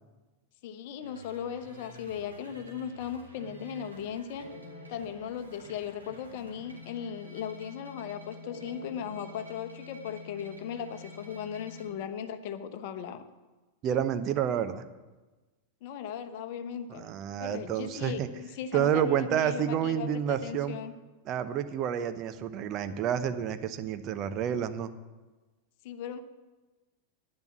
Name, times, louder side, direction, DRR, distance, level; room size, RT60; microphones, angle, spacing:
voice 1, 0.6-4.5 4.9-13.2 15.8-17.1 17.4-20.9 25.8-26.2, left 8 dB, 50° left, 9 dB, 1.0 m, -37 dB
sound 1, 1.0-11.9, left 2 dB, 80° right, 2.9 m, -49 dB
voice 2, 13.8-14.8 16.9-18.3 18.7-20.8 21.3-24.9, right 9 dB, 35° right, 10 dB, 0.8 m, -29 dB
10.5 x 9.9 x 7.2 m, 1.2 s
figure-of-eight pair, 90°, 0 cm